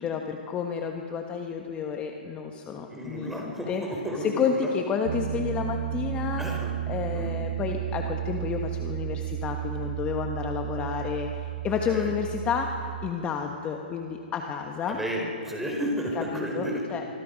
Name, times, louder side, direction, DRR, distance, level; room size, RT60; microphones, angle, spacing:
voice 1, 0.0-3.8 4.2-6.6 6.9-15.0 16.1-17.0, left 6 dB, 20° left, 3 dB, 1.3 m, -30 dB
voice 2, 2.9-3.7 4.0-4.7 6.4-6.7 7.1-7.4 11.9-12.1 14.9-16.8, equal, 5° right, -1 dB, 4.5 m, -32 dB
Piano, 5.0-13.1, right 13 dB, 60° right, 0.7 m, -33 dB
25.5 x 23.0 x 5.3 m, 2.7 s
hypercardioid pair, 140°, 5 cm